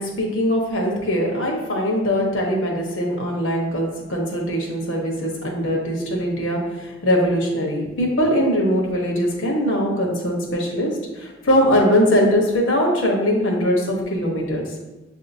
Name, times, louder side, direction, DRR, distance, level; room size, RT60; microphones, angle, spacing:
voice 1, 0.0-10.9 11.2-14.6, equal, 75° left, 0 dB, 1.1 m, -21 dB
7.1 x 2.8 x 2.7 m, 1.1 s
head